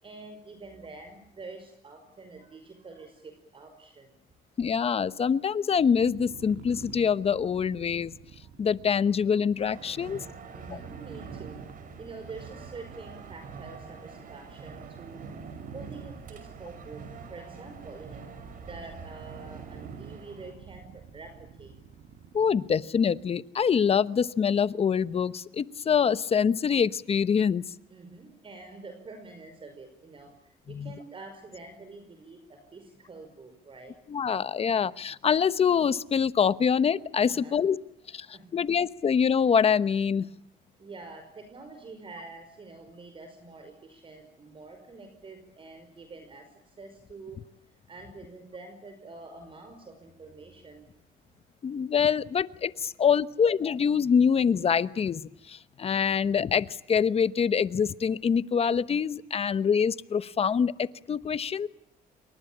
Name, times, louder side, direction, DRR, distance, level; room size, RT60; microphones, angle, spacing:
voice 1, 0.0-4.1 10.5-11.6 12.0-15.3 15.7-17.0 17.3-18.2 18.6-21.7 27.9-30.3 30.7-33.9 37.3-37.6 38.3-38.6 40.8-46.5 46.8-47.4 47.9-50.9, right 3 dB, 30° right, 7 dB, 5.3 m, -46 dB
voice 2, 4.6-8.1 8.6-10.2 10.7-10.8 22.3-27.7 30.7-30.9 34.1-37.8 38.1-40.3 51.6-61.7, left 7 dB, 35° left, 15 dB, 1.0 m, -25 dB
sound 1, 5.7-23.0, right 7 dB, 70° right, 2.7 m, -48 dB
sound 2, 9.6-20.5, right 5 dB, 55° right, 6.0 m, -45 dB
28.5 x 24.0 x 8.7 m, 0.76 s
cardioid pair, 110°, 17 cm